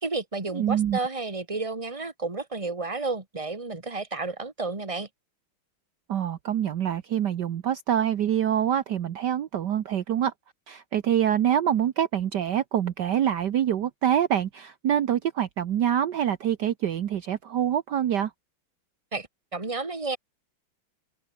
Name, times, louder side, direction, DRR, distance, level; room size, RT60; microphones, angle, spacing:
voice 1, 0.0-5.1 19.1-19.3 19.5-20.2, right 3 dB, 15° right, 2.3 m, -31 dB
voice 2, 0.5-1.0 6.1-10.3 10.7-18.3, right 10 dB, 60° right, 1.5 m, -25 dB
open air
omnidirectional pair, 2.2 m